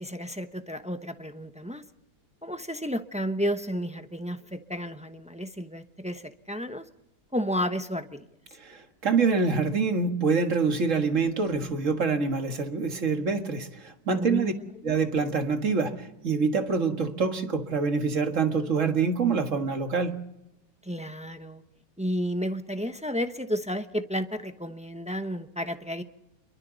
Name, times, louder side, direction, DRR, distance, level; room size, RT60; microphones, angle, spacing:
voice 1, 0.0-1.8 2.4-6.8 7.3-8.3 14.1-15.0 20.8-21.6 22.0-26.0, equal, 10° right, 0.5 m, -32 dB
voice 2, 8.6-14.5 14.8-20.2, right 4 dB, 45° right, 2.0 m, -26 dB
28.0 x 23.5 x 4.0 m
omnidirectional pair, 1.9 m